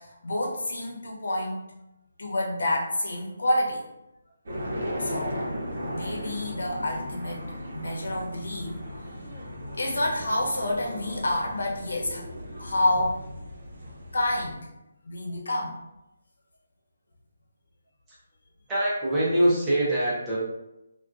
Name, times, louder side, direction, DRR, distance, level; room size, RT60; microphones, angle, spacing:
voice 1, 0.0-1.6 2.2-3.8 5.0-5.4 5.8-7.4 7.7-8.8 9.8-12.2 12.6-13.3 14.1-14.7 15.0-15.8, left 1 dB, 90° left, -1 dB, 0.9 m, -28 dB
sound 1, 4.5-14.5, equal, 50° right, 0.6 m, -36 dB
voice 2, 18.7-20.4, right 1 dB, 5° right, -9 dB, 0.5 m, -23 dB
3.5 x 2.2 x 2.5 m, 0.91 s
hypercardioid pair, 180°, 0 cm